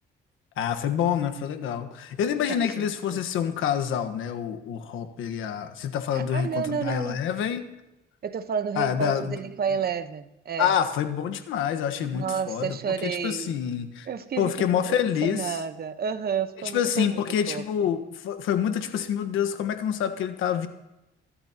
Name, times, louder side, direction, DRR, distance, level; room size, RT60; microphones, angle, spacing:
voice 1, 0.6-7.6 8.8-9.4 10.6-12.8 13.0-14.1 14.4-15.6 16.7-20.7, left 9 dB, 85° left, 1.4 m, -27 dB
voice 2, 2.5-3.2 6.1-7.2 8.2-10.8 12.1-13.6 14.1-14.9 15.2-17.2 17.5-17.6, right 7 dB, 50° right, 1.1 m, -31 dB
24.5 x 13.0 x 3.0 m
cardioid pair, 90°, 20 cm